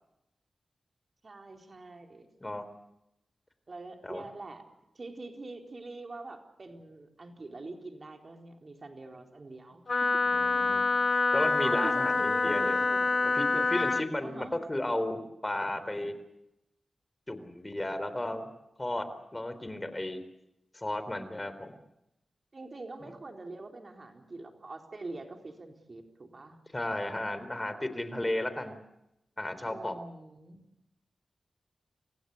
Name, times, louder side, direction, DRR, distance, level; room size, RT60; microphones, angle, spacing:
voice 1, 1.2-2.3 3.7-4.6 4.9-10.2 11.4-13.4 14.2-14.6 22.5-26.6 29.7-30.6, right 2 dB, 50° right, 3 dB, 4.2 m, -44 dB
Wind instrument woodwind instrument, 9.9-14.1, left 4 dB, 60° left, 1.3 m, -26 dB
voice 2, 10.3-10.8 11.3-12.9 13.3-16.1 17.3-18.5 18.8-20.2 20.7-21.7 23.0-23.1 26.7-28.8 29.4-29.9, left 1 dB, 25° left, 11 dB, 3.9 m, -34 dB
28.5 x 16.0 x 8.2 m, 0.85 s
cardioid pair, 45°, 0 cm